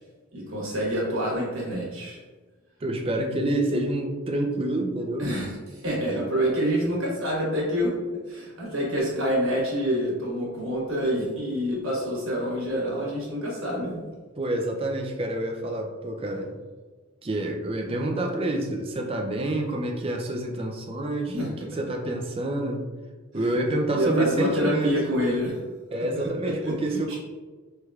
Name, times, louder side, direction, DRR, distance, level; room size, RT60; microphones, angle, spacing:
voice 1, 0.3-2.2 5.2-7.9 8.3-14.0 21.3-21.5 23.9-25.6 26.1-26.3 26.6-27.2, equal, 60° right, -3 dB, 1.2 m, -27 dB
voice 2, 2.8-5.3 6.1-6.2 14.4-16.6 17.2-22.8 23.3-24.9 25.9-27.2, right 1 dB, 25° right, 2 dB, 0.4 m, -28 dB
4.5 x 3.3 x 2.3 m, 1.4 s
head